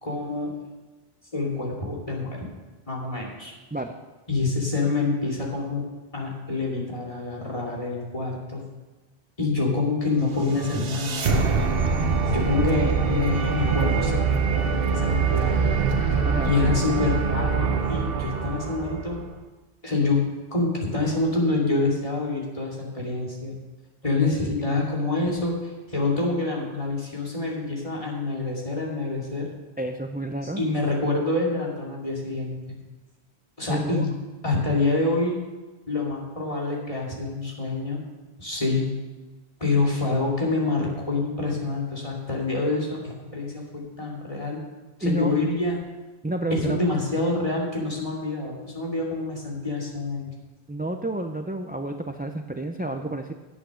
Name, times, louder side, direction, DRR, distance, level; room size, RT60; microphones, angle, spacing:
voice 1, 0.0-0.5 1.3-2.4 2.9-3.5 4.3-5.8 6.1-8.6 9.4-11.8 12.3-15.9 16.4-19.2 19.8-20.2 20.5-23.6 24.0-29.5 30.4-32.6 33.6-34.1 34.4-35.4 35.9-38.0 38.4-38.9 39.6-44.6 45.0-45.8 46.5-50.3, left 3 dB, 30° left, -3 dB, 2.6 m, -26 dB
sound 1, 10.2-19.4, right 5 dB, 65° right, 1.1 m, -24 dB
voice 2, 29.8-30.6 33.7-34.0 45.0-45.3 46.2-46.8 50.7-53.3, right 1 dB, 15° right, 5 dB, 0.4 m, -29 dB
11.0 x 8.3 x 6.4 m, 1.2 s
omnidirectional pair, 1.1 m